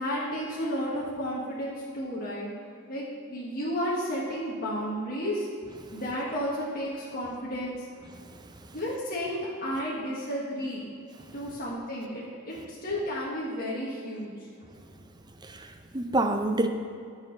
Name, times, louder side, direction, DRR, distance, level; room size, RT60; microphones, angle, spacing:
voice 1, 0.0-2.5 2.9-5.5 5.9-7.9 8.7-10.9 11.3-14.3, equal, 40° left, -6 dB, 1.5 m, -32 dB
voice 2, 8.1-8.8 11.2-11.4 15.4-16.7, right 2 dB, 20° right, 6 dB, 0.5 m, -30 dB
9.6 x 6.2 x 5.2 m, 2.4 s
head